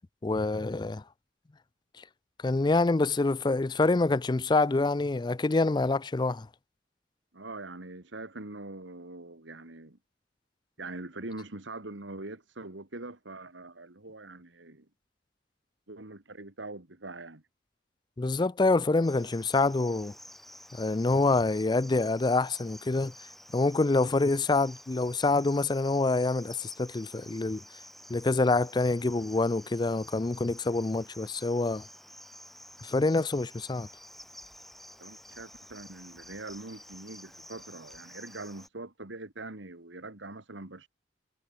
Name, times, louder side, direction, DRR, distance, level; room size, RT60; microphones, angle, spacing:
voice 1, 0.2-1.0 2.4-6.5 18.2-20.1 20.7-23.1 23.5-27.6 28.1-31.9 32.8-33.9, left 3 dB, 25° left, 0.4 m, -26 dB
voice 2, 7.3-10.0 10.8-14.9 15.9-17.4 35.0-40.9, right 2 dB, 80° right, 2.3 m, -43 dB
Cricket, 19.0-38.7, equal, ahead, 1.9 m, -50 dB
head